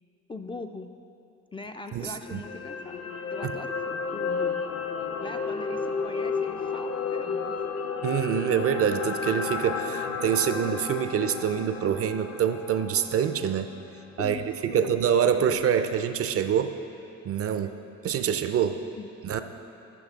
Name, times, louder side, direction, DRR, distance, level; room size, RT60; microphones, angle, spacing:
voice 1, 0.3-0.9 1.5-4.7 5.2-7.7 14.2-15.0 15.4-15.6 17.6-17.7 19.0-19.1, left 2 dB, 20° left, 5 dB, 0.3 m, -40 dB
voice 2, 1.9-2.4 3.4-3.5 8.0-13.7 14.2-14.4 14.6-16.7 17.2-17.8 18.0-18.9 19.2-19.4, right 8 dB, 50° right, 10 dB, 0.5 m, -26 dB
sound 1, 2.2-14.5 14.9-15.0, left 5 dB, 55° left, 0.7 m, -32 dB
13.0 x 5.7 x 3.6 m, 2.8 s
cardioid pair, 90°, 30 cm